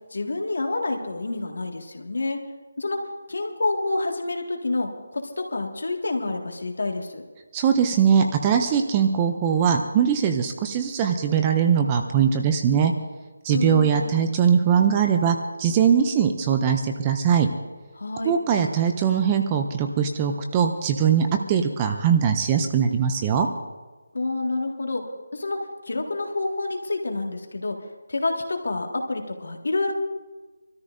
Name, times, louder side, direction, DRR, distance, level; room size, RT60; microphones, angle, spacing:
voice 1, 0.1-2.4 2.8-3.0 3.3-7.2 13.5-14.3 18.0-18.3 24.1-25.0 25.3-25.6 25.9-27.8 28.1-29.9, left 2 dB, 70° left, 3 dB, 1.8 m, -28 dB
voice 2, 7.5-12.9 13.4-17.5 18.2-23.5, right 7 dB, 10° right, 5 dB, 0.4 m, -21 dB
25.5 x 13.5 x 2.6 m, 1.3 s
figure-of-eight pair, 180°, 0 cm